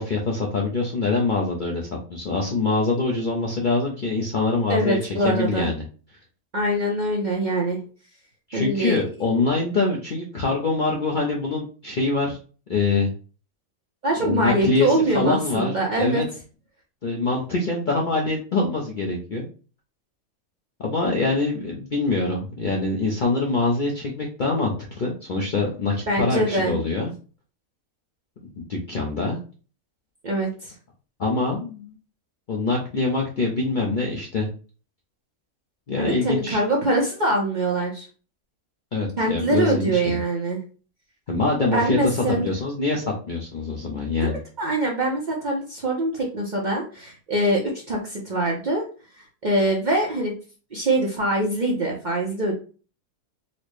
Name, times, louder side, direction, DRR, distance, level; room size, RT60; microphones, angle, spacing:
voice 1, 0.0-5.8 8.5-12.4 12.7-13.1 14.2-16.3 17.0-19.5 20.8-27.1 28.6-29.4 31.2-31.9 32.5-34.5 35.9-36.6 38.9-40.2 41.3-44.4, left 3 dB, 55° left, -1 dB, 0.6 m, -24 dB
voice 2, 4.7-5.7 6.5-7.8 8.5-9.0 14.0-16.2 26.1-26.8 30.2-30.7 36.0-38.1 39.2-40.6 41.7-42.5 44.2-48.8 49.2-50.4 50.7-52.5, right 1 dB, 45° right, -2 dB, 0.6 m, -23 dB
4.1 x 2.0 x 3.1 m, 0.36 s
omnidirectional pair, 1.5 m